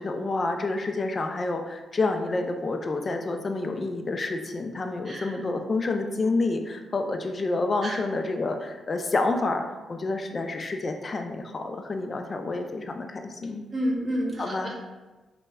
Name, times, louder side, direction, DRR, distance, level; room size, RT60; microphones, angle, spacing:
voice 1, 0.0-9.6 9.9-13.6 14.4-14.7, left 3 dB, 45° left, 5 dB, 0.3 m, -28 dB
voice 2, 13.7-14.7, equal, 45° right, -3 dB, 0.8 m, -29 dB
3.2 x 2.1 x 2.2 m, 1.2 s
supercardioid pair, 50°, 0 cm